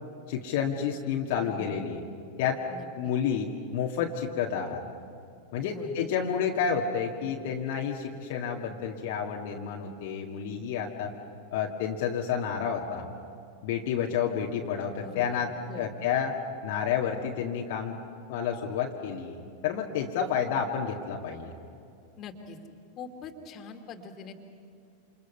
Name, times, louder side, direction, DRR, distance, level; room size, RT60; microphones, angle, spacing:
voice 1, 0.3-2.0 2.4-2.6 3.0-4.8 5.5-11.1 11.5-13.1 13.6-16.4 16.6-18.0 18.3-21.5, left 7 dB, 50° left, -1 dB, 2.0 m, -30 dB
voice 2, 1.5-1.9 2.7-3.1 5.6-6.0 15.0-15.9 22.2-22.6 23.0-24.3, left 4 dB, 30° left, 4 dB, 2.5 m, -43 dB
29.0 x 28.0 x 5.6 m, 2.5 s
figure-of-eight pair, 90°, 0 cm